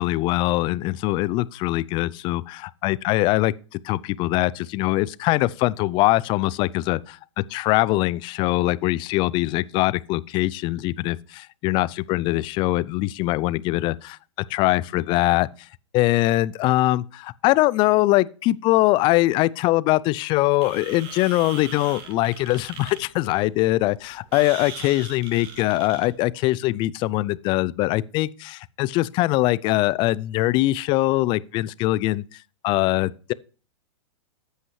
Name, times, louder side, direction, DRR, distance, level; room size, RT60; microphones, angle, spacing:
voice 1, 0.0-7.2 7.5-14.2 14.5-15.5 15.9-32.2 32.6-33.3, left 18 dB, 30° left, 0.4 m, -22 dB
sound 1, 20.6-26.2, right 6 dB, 40° right, 2.1 m, -40 dB
13.5 x 5.5 x 3.1 m
hypercardioid pair, 115°, 16 cm